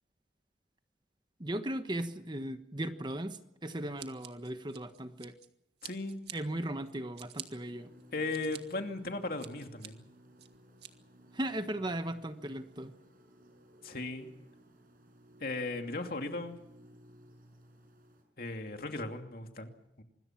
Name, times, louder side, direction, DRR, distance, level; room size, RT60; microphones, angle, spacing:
voice 1, 1.4-5.3 6.3-7.9 11.3-12.9, right 1 dB, 25° right, 9 dB, 1.2 m, -37 dB
Scissors, 4.0-5.5 5.8-6.4 6.8-7.5 8.0-8.6 9.0-9.9 10.4-10.9, right 11 dB, 75° right, 1.9 m, -47 dB
voice 2, 5.8-6.2 8.1-10.0 13.8-14.3 15.4-16.6 18.4-20.0, left 2 dB, 55° left, 4 dB, 2.7 m, -37 dB
sound 1, 7.6-18.2, equal, 55° right, 5.7 m, -59 dB
26.0 x 21.5 x 6.0 m, 0.83 s
head